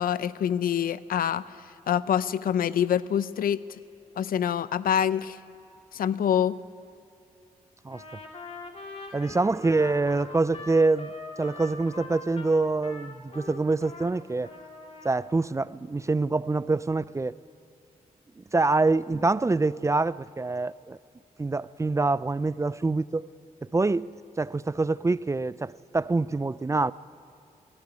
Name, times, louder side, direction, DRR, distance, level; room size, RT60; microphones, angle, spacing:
voice 1, 0.0-1.4 1.9-3.6 4.2-5.4 5.9-6.6, left 9 dB, 85° left, 0.6 m, -25 dB
Trumpet, 7.9-14.1 14.4-15.2, left 3 dB, 45° left, 2.5 m, -43 dB
voice 2, 9.1-11.1 11.4-14.5 15.0-17.4 18.4-21.0 21.4-23.3 23.7-24.1 24.4-26.9, right 3 dB, 20° right, 0.4 m, -25 dB
21.5 x 13.0 x 9.7 m
cardioid pair, 75°, 15 cm